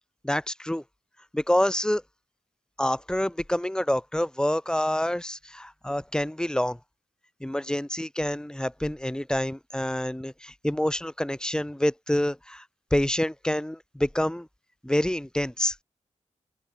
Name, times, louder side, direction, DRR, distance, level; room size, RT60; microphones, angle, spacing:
voice 1, 0.2-0.8 1.3-2.0 2.8-6.8 7.4-12.6 12.9-14.5 14.8-15.8, left 1 dB, 5° left, 1.4 m, -27 dB
open air
wide cardioid pair, 85°, 13 cm